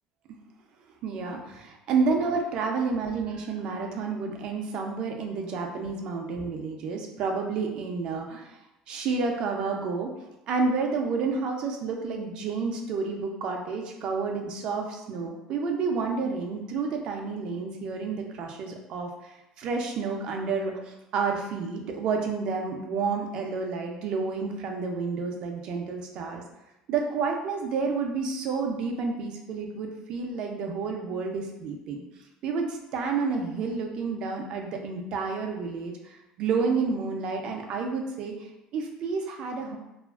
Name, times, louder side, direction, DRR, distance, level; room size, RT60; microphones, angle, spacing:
voice 1, 1.0-8.6 8.9-10.1 10.5-26.4 26.9-32.0 32.4-39.8, right 4 dB, 45° right, 2 dB, 0.3 m, -30 dB
2.8 x 2.3 x 2.3 m, 0.93 s
cardioid pair, 170°, 2 cm